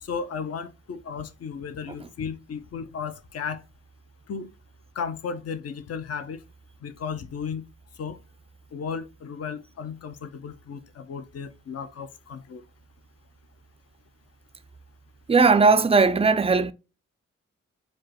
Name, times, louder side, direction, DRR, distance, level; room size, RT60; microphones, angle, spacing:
voice 1, 0.0-3.6 4.3-4.5 5.0-6.4 6.8-7.6 8.0-8.2 8.7-12.6, left 6 dB, 50° left, 0.6 m, -34 dB
voice 2, 15.3-16.7, right 4 dB, 20° right, 0.4 m, -18 dB
4.6 x 2.2 x 2.9 m
supercardioid pair, 40°, 32 cm